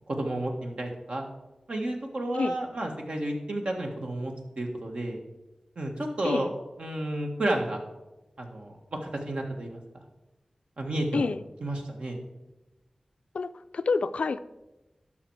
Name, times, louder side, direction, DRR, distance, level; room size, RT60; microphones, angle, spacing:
voice 1, 0.1-1.2 1.7-5.2 5.7-6.5 6.8-7.8 8.4-9.8 10.8-11.3 11.6-12.2, right 1 dB, 65° right, 2 dB, 1.6 m, -31 dB
voice 2, 11.1-11.4 13.3-14.4, left 4 dB, 85° left, 13 dB, 0.4 m, -28 dB
11.5 x 6.1 x 4.7 m, 1.0 s
wide cardioid pair, 65°, 2 cm